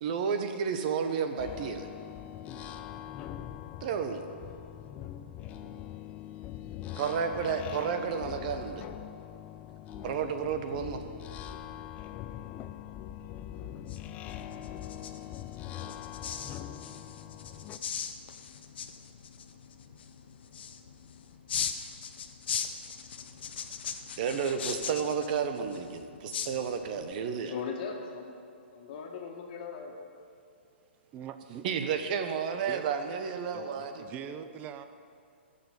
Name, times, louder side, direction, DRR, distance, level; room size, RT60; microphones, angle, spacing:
voice 1, 0.0-1.9 3.8-4.2 7.0-8.8 10.0-11.0 24.2-27.5 31.6-34.1, right 6 dB, 45° right, 7 dB, 1.1 m, -31 dB
sound 1, 1.4-17.8, left 11 dB, 20° left, 0.4 m, -42 dB
sound 2, 13.5-27.1, left 7 dB, 60° left, 0.9 m, -40 dB
voice 2, 27.5-28.3 28.7-30.0 32.5-32.6 34.2-34.4, left 6 dB, 45° left, 2 dB, 1.9 m, -39 dB
voice 3, 30.9-31.7 32.7-32.9 33.5-34.9, right 9 dB, 25° right, 9 dB, 0.6 m, -43 dB
14.5 x 6.9 x 7.2 m, 2.4 s
hypercardioid pair, 145°, 6 cm